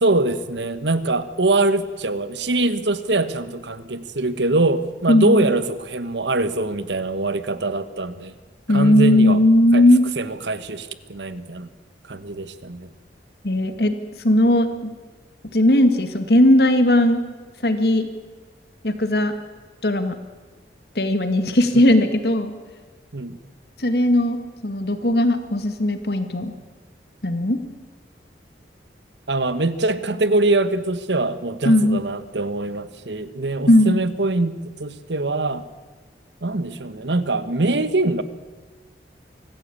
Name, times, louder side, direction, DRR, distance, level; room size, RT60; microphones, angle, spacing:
voice 1, 0.0-8.3 8.7-9.4 9.7-9.9 10.2-11.7 12.1-12.9 21.7-21.8 23.1-23.4 29.3-35.6 36.4-38.2, right 2 dB, 85° right, 13 dB, 1.3 m, -23 dB
voice 2, 5.1-5.5 8.7-10.1 13.4-13.9 14.2-14.9 15.5-17.2 17.6-18.1 18.8-19.3 19.8-20.1 21.0-22.5 23.8-24.4 24.6-26.5 27.2-27.6 31.7-32.0 33.7-34.0, left 1 dB, 60° left, 9 dB, 2.1 m, -17 dB
24.5 x 14.5 x 8.7 m, 1.3 s
head